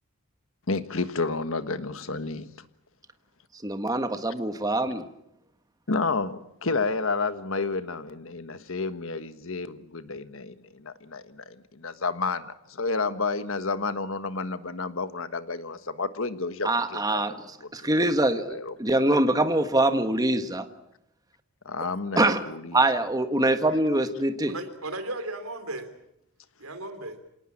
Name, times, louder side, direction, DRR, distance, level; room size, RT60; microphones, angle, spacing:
voice 1, 0.7-2.5 5.9-17.4 18.0-18.7 21.6-22.8, left 3 dB, 65° left, 11 dB, 1.4 m, -31 dB
voice 2, 3.6-5.0 16.6-20.7 22.2-22.4 22.7-24.5, right 1 dB, 15° right, 8 dB, 1.5 m, -24 dB
voice 3, 24.5-25.9 26.6-27.2, right 2 dB, 80° right, 9 dB, 3.5 m, -35 dB
27.0 x 18.5 x 8.7 m, 0.82 s
head